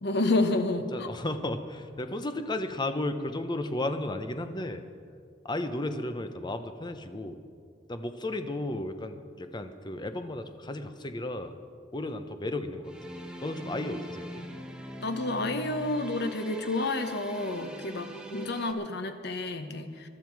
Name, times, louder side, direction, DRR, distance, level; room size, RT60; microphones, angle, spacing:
voice 1, 0.0-1.1 15.0-20.1, left 2 dB, 65° left, 7 dB, 1.1 m, -30 dB
voice 2, 0.9-4.8 5.4-7.4 7.9-11.5 11.9-12.9 13.4-14.5, left 1 dB, 25° left, 8 dB, 0.8 m, -34 dB
sound 1, 12.8-18.7, equal, 5° right, 1.1 m, -42 dB
19.5 x 12.5 x 4.7 m, 2.2 s
head